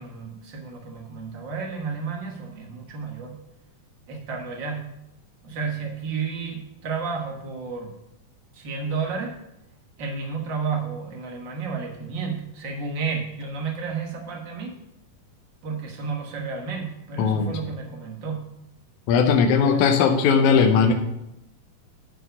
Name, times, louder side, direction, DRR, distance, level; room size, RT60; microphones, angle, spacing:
voice 1, 0.0-3.4 4.1-4.9 5.4-7.9 8.5-9.3 10.0-14.7 15.6-18.4 19.4-19.8, right 5 dB, 70° right, 1 dB, 1.1 m, -32 dB
voice 2, 17.2-17.5 19.1-20.9, left 6 dB, 75° left, 3 dB, 1.9 m, -18 dB
11.0 x 4.5 x 5.7 m, 0.85 s
omnidirectional pair, 4.1 m